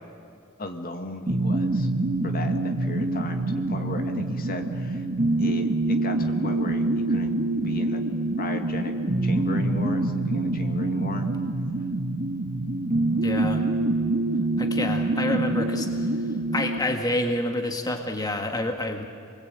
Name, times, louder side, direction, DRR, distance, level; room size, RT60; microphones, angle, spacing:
voice 1, 0.6-1.9 2.2-5.0 5.4-8.0 8.4-8.9 9.2-11.3, left 2 dB, 40° left, 5 dB, 1.9 m, -35 dB
sound 1, 1.3-16.8, right 2 dB, 35° right, 1.7 m, -25 dB
voice 2, 13.2-13.6 14.6-19.1, left 1 dB, 20° left, 4 dB, 1.8 m, -28 dB
28.5 x 21.0 x 8.9 m, 2.5 s
head